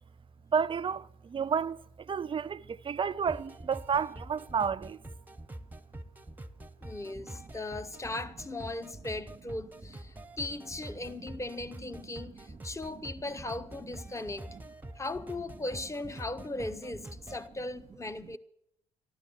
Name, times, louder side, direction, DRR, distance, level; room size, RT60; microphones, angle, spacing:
voice 1, 0.5-5.0 7.2-7.3, right 6 dB, 30° right, 0.5 m, -31 dB
sound 1, 3.3-17.5, right 1 dB, 10° right, 1.0 m, -46 dB
voice 2, 6.8-14.5 14.9-18.4, left 2 dB, 15° left, 1.2 m, -38 dB
12.5 x 12.5 x 7.6 m
hypercardioid pair, 50°, 18 cm